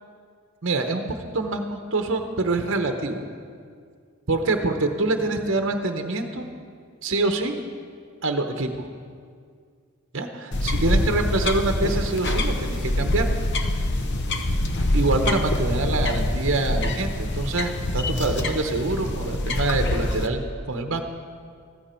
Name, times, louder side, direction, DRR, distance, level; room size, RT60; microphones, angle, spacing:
voice 1, 0.6-1.0 1.3-3.2 4.3-6.5 7.0-7.6 8.2-8.8 10.1-13.3 14.9-21.0, right 2 dB, 60° right, 5 dB, 0.9 m, -25 dB
sound 1, 10.5-20.3, left 1 dB, 50° left, 0.8 m, -25 dB
14.5 x 14.5 x 4.4 m, 2.1 s
head